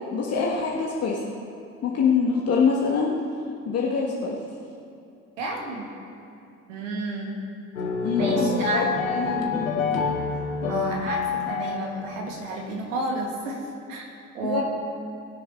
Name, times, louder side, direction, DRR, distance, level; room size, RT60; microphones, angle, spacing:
voice 1, 0.1-1.2 1.8-3.1 3.7-4.4 8.0-9.7 14.4-14.6, left 5 dB, 35° left, -3 dB, 1.4 m, -24 dB
voice 2, 5.4-5.8 6.7-7.4 8.2-8.8 10.7-13.6 13.9-14.0 14.3-14.6, right 2 dB, 70° right, 0 dB, 2.0 m, -31 dB
sound 1, 7.8-12.4, left 4 dB, 80° left, 1.1 m, -27 dB
20.5 x 6.8 x 4.2 m, 2.7 s
figure-of-eight pair, 60°, 40 cm